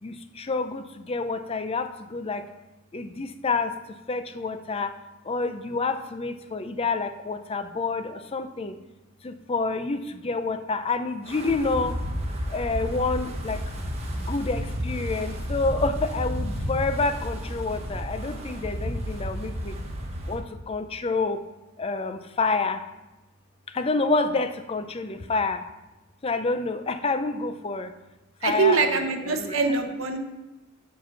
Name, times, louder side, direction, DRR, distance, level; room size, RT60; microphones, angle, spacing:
voice 1, 0.0-2.5 2.9-5.0 5.2-8.8 9.2-12.0 12.5-13.9 14.2-19.7 20.3-21.4 21.8-22.8 23.7-25.6 26.2-27.9 28.4-29.0 29.3-29.8, left 3 dB, 25° left, 9 dB, 0.4 m, -28 dB
Wind, 11.2-20.4, equal, 30° right, 1.0 m, -32 dB
voice 2, 28.4-30.2, right 4 dB, 65° right, 5 dB, 0.8 m, -23 dB
7.4 x 4.4 x 5.7 m, 1.1 s
head